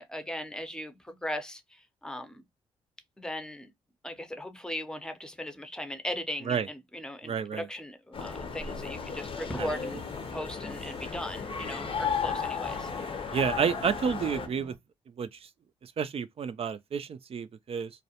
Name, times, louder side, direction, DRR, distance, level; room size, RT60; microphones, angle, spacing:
voice 1, 0.0-2.5 3.2-3.7 4.0-12.9, left 1 dB, 5° left, 0.6 m, -38 dB
voice 2, 7.2-7.6 9.6-9.7 13.3-14.7 15.2-15.3 15.8-17.9, right 7 dB, 50° right, 0.4 m, -30 dB
sound 1, 8.1-14.5, left 6 dB, 45° left, 0.6 m, -34 dB
sound 2, 8.2-14.8, right 4 dB, 85° right, 0.7 m, -50 dB
2.3 x 2.1 x 2.7 m
supercardioid pair, 50°, 13 cm